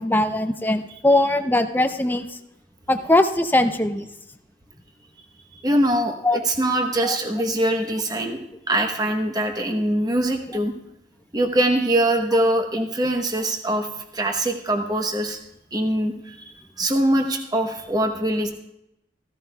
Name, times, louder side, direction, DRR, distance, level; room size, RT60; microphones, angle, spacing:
voice 1, 0.0-2.3 2.9-4.1 6.2-6.4 7.0-7.1, left 1 dB, 10° left, 8 dB, 0.5 m, -20 dB
voice 2, 5.5-10.7 11.3-13.9 14.1-15.4 15.7-18.5, right 1 dB, 20° right, 4 dB, 0.9 m, -23 dB
15.0 x 14.5 x 2.3 m, 0.85 s
head